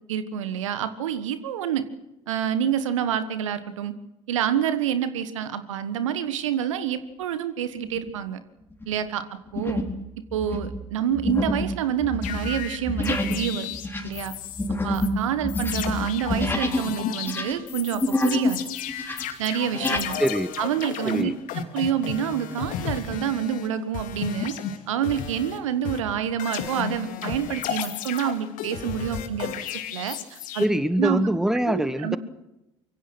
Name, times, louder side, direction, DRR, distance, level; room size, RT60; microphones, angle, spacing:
voice 1, 0.1-1.8 2.3-3.9 4.3-8.4 8.9-9.2 9.5-9.8 10.3-14.3 14.8-18.6 19.4-20.2 20.6-21.3 21.7-24.6 24.9-30.6 31.0-31.3 31.7-32.2, right 9 dB, 75° right, 12 dB, 1.5 m, -27 dB
sound 1, 7.8-8.2 8.7-8.9 9.5-10.0 10.3-16.9 17.2-18.6 18.9-20.1, left 1 dB, 15° left, 4.1 m, -27 dB
sound 2, 12.2-14.7 14.9-15.1 15.5-23.7 23.9-25.6 25.8-30.7, left 9 dB, 55° left, 2.4 m, -34 dB
voice 2, 20.2-20.5 21.0-21.4 30.6-32.2, equal, 5° right, 14 dB, 1.3 m, -23 dB
25.0 x 23.5 x 6.3 m, 0.92 s
figure-of-eight pair, 60°, 16 cm